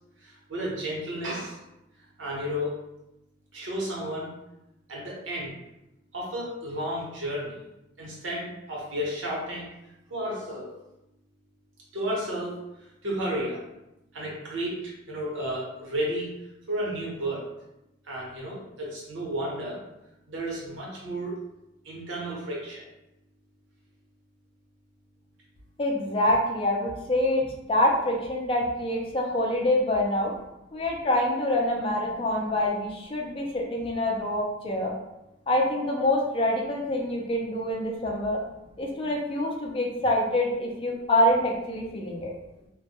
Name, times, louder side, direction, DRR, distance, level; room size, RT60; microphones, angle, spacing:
voice 1, 0.5-1.5 2.2-2.8 3.5-4.3 4.9-5.5 6.1-7.6 8.0-9.7 10.1-10.7 11.9-12.5 13.0-13.6 14.1-16.3 16.7-17.4 18.1-19.8 20.3-21.3 21.8-22.8, equal, 80° right, -4 dB, 0.9 m, -32 dB
voice 2, 25.8-30.3 30.7-34.9 35.5-38.4 38.8-42.3, left 1 dB, 30° left, -1 dB, 0.4 m, -26 dB
2.2 x 2.1 x 2.8 m, 0.91 s
head